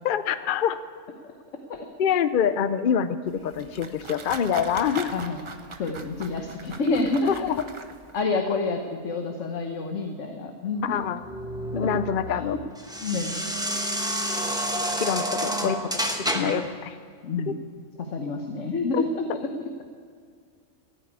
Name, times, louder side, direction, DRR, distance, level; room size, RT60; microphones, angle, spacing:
voice 1, 0.0-0.8 2.0-5.2 7.3-7.6 10.8-11.2 11.7-12.6 14.0-14.1 15.0-16.9 18.9-19.0, left 8 dB, 50° left, 12 dB, 0.7 m, -26 dB
sound 1, 3.3-8.2, right 3 dB, 30° right, 0.7 m, -40 dB
voice 2, 5.1-5.4 5.8-7.3 8.1-10.9 11.8-11.9 12.3-12.4 13.0-13.4 16.3-16.5 17.2-17.5 18.0-19.7, left 3 dB, 75° left, 4 dB, 1.4 m, -28 dB
sound 2, 10.9-16.7, equal, 5° right, 1.1 m, -29 dB
14.5 x 9.0 x 9.5 m, 2.2 s
omnidirectional pair, 1.3 m